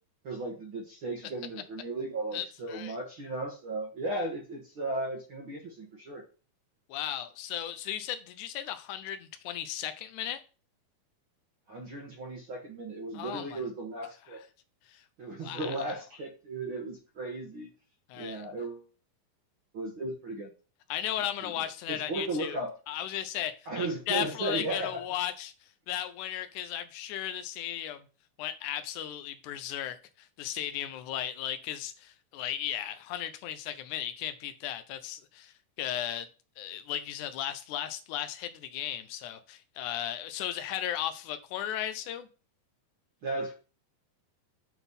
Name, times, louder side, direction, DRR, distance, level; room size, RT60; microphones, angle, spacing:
voice 1, 0.2-6.2 11.7-14.4 15.2-17.7 18.1-18.9 19.7-20.5 21.4-22.7 23.7-25.0 43.2-43.5, right 2 dB, 55° right, 1.4 m, -36 dB
voice 2, 2.3-3.0 6.9-10.4 13.1-13.6 14.3-14.4 14.9-15.0 15.4-15.8 18.1-18.5 20.9-22.6 22.9-25.5 25.9-28.0 28.4-36.3 36.6-42.3, left 11 dB, 80° left, 1.8 m, -36 dB
7.8 x 4.1 x 5.4 m
omnidirectional pair, 4.1 m